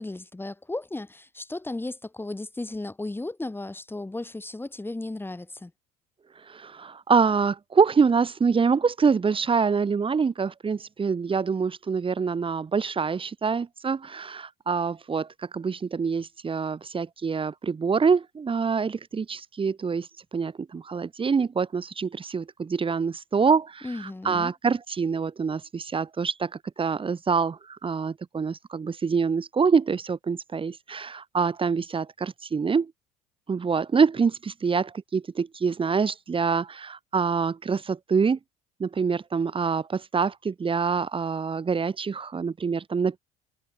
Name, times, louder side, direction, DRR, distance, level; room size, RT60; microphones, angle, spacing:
voice 1, 0.0-5.7 23.8-24.5, left 2 dB, 10° left, 7.9 m, -35 dB
voice 2, 6.5-20.1 20.3-26.5 26.8-32.9 33.5-38.4 38.8-43.2, right 5 dB, 30° right, 5.4 m, -25 dB
hypercardioid pair, 65°, 19 cm